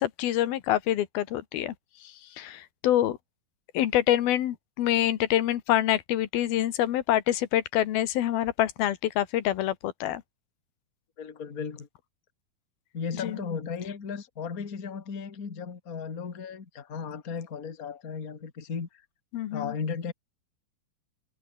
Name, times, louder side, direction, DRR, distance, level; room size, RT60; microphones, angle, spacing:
voice 1, 0.0-1.7 2.0-3.2 3.7-10.2 13.2-13.4 19.3-19.7, left 12 dB, 85° left, 3.4 m, -26 dB
voice 2, 11.2-11.9 12.9-18.9 19.5-20.1, left 6 dB, 30° left, 2.1 m, -35 dB
omnidirectional pair, 4.2 m